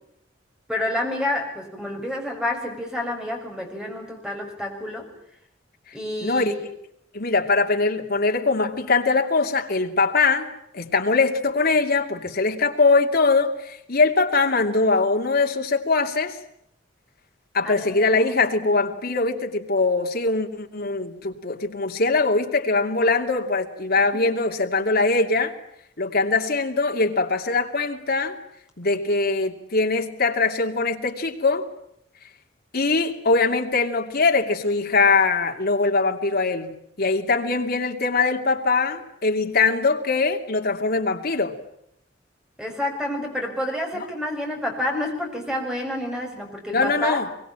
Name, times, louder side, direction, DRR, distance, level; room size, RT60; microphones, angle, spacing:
voice 1, 0.7-5.1 5.9-6.6 17.6-18.7 24.0-24.2 42.6-47.2, left 1 dB, 5° right, 2 dB, 6.5 m, -29 dB
voice 2, 6.2-6.5 7.1-10.5 10.7-16.4 17.5-25.5 26.0-28.4 28.8-31.7 32.7-41.6 43.9-44.1 46.7-47.3, left 3 dB, 55° left, 3 dB, 2.7 m, -22 dB
24.5 x 23.5 x 8.9 m, 0.76 s
head